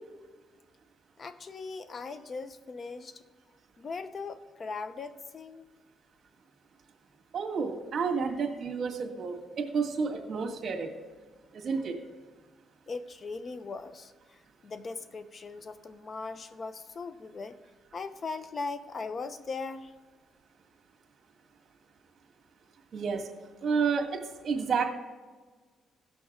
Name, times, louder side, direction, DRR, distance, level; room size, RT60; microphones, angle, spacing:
voice 1, 1.2-3.2 3.8-5.7 12.9-17.6 17.9-19.9, left 4 dB, 40° left, 12 dB, 0.8 m, -39 dB
voice 2, 7.3-10.9 11.5-12.0 22.9-23.3 23.6-24.9, right 5 dB, 50° right, 2 dB, 1.9 m, -30 dB
17.0 x 6.3 x 3.7 m, 1.4 s
cardioid pair, 90°, 0 cm